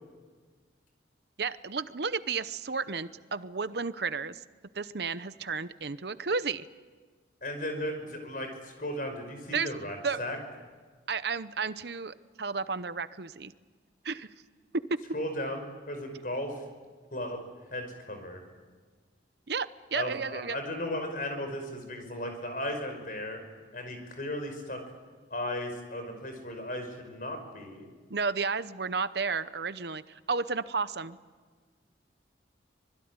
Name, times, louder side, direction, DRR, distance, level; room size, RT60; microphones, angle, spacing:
voice 1, 1.4-4.4 4.7-6.7 9.5-9.7 10.0-10.2 11.1-13.5 14.0-14.3 14.9-15.0 19.5-20.6 28.1-31.2, right 4 dB, 60° right, 13 dB, 0.8 m, -32 dB
voice 2, 7.4-10.4 15.1-16.6 17.1-17.4 17.7-18.4 19.9-23.4 23.7-24.8 25.3-27.9, left 1 dB, 45° left, 5 dB, 5.7 m, -36 dB
25.5 x 21.0 x 9.7 m, 1.5 s
head